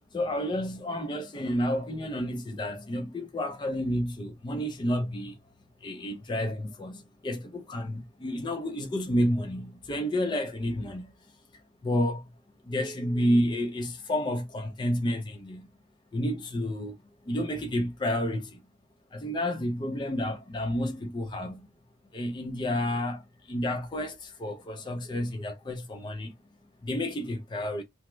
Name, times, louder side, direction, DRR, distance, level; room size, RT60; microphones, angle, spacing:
voice 1, 0.1-5.3 5.8-7.0 7.2-11.1 11.8-12.2 12.7-15.6 16.1-16.9 17.3-18.5 19.1-21.6 22.1-23.2 23.5-26.3 26.8-27.8, equal, 20° left, 0.3 m, -30 dB
2.9 x 2.0 x 3.2 m
head